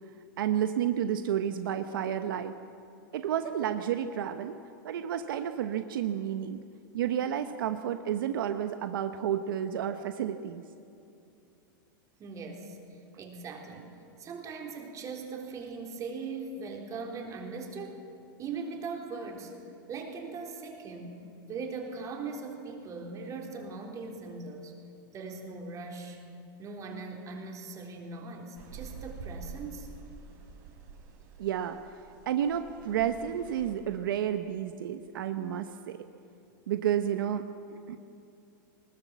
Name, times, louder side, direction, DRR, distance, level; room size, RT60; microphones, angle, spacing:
voice 1, 0.4-2.5 3.1-4.6 4.8-6.6 6.9-10.6 31.4-31.8 32.3-36.0 36.7-37.4 37.7-38.0, right 9 dB, 75° right, 8 dB, 1.0 m, -31 dB
voice 2, 12.2-13.9 14.2-18.0 18.4-19.5 19.9-21.2 21.5-24.7 25.1-26.2 26.6-29.9, right 4 dB, 30° right, 2 dB, 3.6 m, -40 dB
sound 1, 28.6-33.7, right 4 dB, 55° right, 5.8 m, -47 dB
20.5 x 18.5 x 7.3 m, 2.7 s
hypercardioid pair, 130°, 11 cm